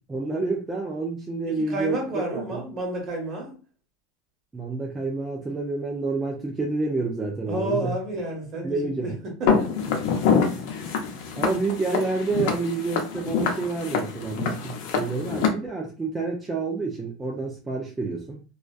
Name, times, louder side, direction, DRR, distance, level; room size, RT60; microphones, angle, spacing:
voice 1, 0.1-2.6 4.5-8.0 8.6-9.1 10.5-10.7 11.4-18.4, right 3 dB, 15° right, 0.5 m, -29 dB
voice 2, 1.6-3.5 7.5-9.1 9.4-9.7, right 1 dB, 40° right, 1.1 m, -30 dB
Walk footsteps, 9.5-15.5, left 6 dB, 70° left, 0.6 m, -26 dB
2.4 x 2.3 x 2.3 m
supercardioid pair, 115°, 0 cm